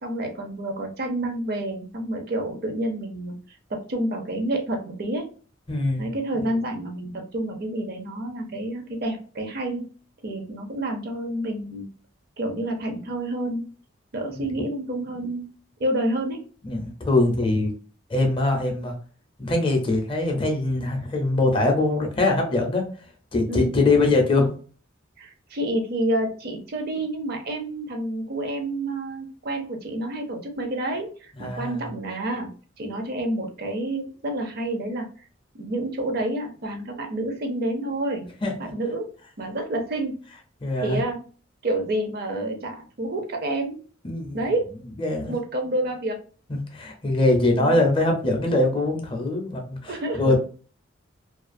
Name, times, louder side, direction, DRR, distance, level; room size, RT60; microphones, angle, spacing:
voice 1, 0.0-5.3 6.0-9.9 10.2-11.8 12.4-13.7 14.1-15.5 15.8-16.5 23.5-23.7 25.2-32.5 32.8-35.1 35.6-38.3 38.7-39.1 39.4-40.2 40.8-41.2 41.6-43.8 44.3-44.6 45.3-46.2 47.6-47.8 49.9-50.3, right 1 dB, 50° right, 4 dB, 0.5 m, -29 dB
voice 2, 5.7-6.1 14.3-14.4 16.6-17.7 18.1-18.9 19.4-22.9 23.3-24.5 31.4-31.8 38.4-38.7 40.6-41.0 44.0-44.4 45.0-45.3 46.5-50.3, left 2 dB, 25° left, 2 dB, 0.5 m, -22 dB
2.4 x 2.3 x 2.4 m, 0.39 s
head